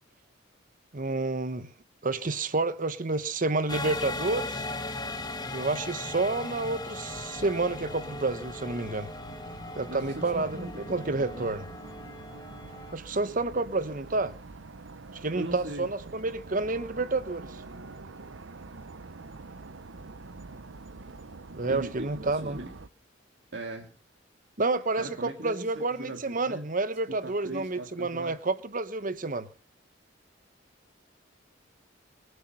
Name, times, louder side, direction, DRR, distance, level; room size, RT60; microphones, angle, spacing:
voice 1, 0.9-1.7 2.0-4.7 5.5-9.1 9.8-11.7 12.9-14.3 15.2-17.6 21.5-22.6 24.6-29.5, right 3 dB, 45° right, 1.2 m, -29 dB
sound 1, 3.7-13.0, left 2 dB, 20° left, 1.3 m, -38 dB
sound 2, 7.1-22.9, right 3 dB, 85° right, 0.8 m, -46 dB
voice 2, 9.9-11.5 15.3-15.9 21.7-22.7 23.5-23.9 25.0-26.6 27.2-28.4, right 1 dB, 65° right, 2.0 m, -40 dB
24.0 x 8.2 x 5.7 m
head